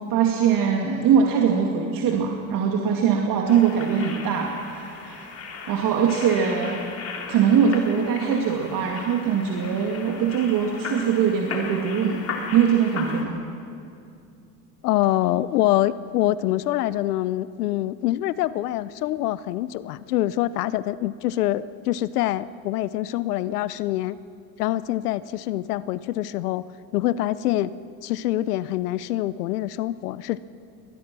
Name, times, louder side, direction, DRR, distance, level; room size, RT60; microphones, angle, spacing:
voice 1, 0.1-5.3 5.7-6.8 7.3-12.2 12.5-13.4, right 7 dB, 45° right, 1 dB, 2.3 m, -22 dB
sound 1, 3.5-13.2, left 5 dB, 30° left, 3.5 m, -37 dB
voice 2, 14.8-24.2 24.6-26.6 26.9-27.7 28.0-30.4, left 14 dB, 85° left, 17 dB, 0.7 m, -25 dB
23.5 x 19.5 x 6.2 m, 2.5 s
supercardioid pair, 100°, 45 cm